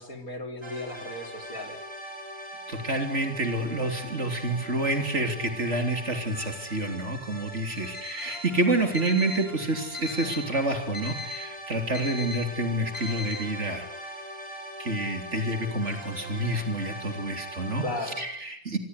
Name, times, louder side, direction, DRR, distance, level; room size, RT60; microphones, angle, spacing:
voice 1, 0.0-1.8 17.8-18.2, left 2 dB, 60° left, 4 dB, 4.3 m, -36 dB
sound 1, 0.6-18.2, equal, 15° right, 6.0 m, -41 dB
voice 2, 2.7-13.9 14.8-17.8 18.2-18.8, right 1 dB, 45° right, 5 dB, 3.7 m, -28 dB
Alarm, 7.8-8.5 8.9-9.5 9.9-10.5 10.9-11.5 11.9-12.4 12.9-13.4, left 3 dB, 45° left, 4.9 m, -38 dB
26.0 x 21.0 x 8.3 m, 0.69 s
omnidirectional pair, 1.7 m